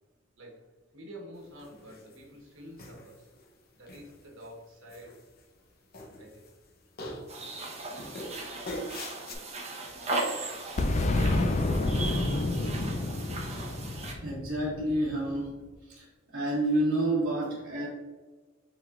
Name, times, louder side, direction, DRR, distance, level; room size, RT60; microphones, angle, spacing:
voice 1, 0.9-3.3 3.7-5.2 6.2-6.5, equal, 80° right, 0 dB, 1.3 m, -48 dB
sound 1, 1.6-2.2 2.8-3.4 3.9-4.5 4.9-5.7 5.9-6.7 7.0-7.5 8.0-9.3, left 1 dB, 50° left, 0.8 m, -42 dB
sound 2, 7.3-14.1, right 2 dB, 35° right, 0.9 m, -37 dB
Boom, 10.8-15.4, left 2 dB, 35° left, 0.4 m, -29 dB
voice 2, 14.2-15.5 15.9-16.0 16.3-17.9, right 1 dB, 60° right, -9 dB, 1.5 m, -29 dB
5.8 x 3.7 x 2.4 m, 1.3 s
head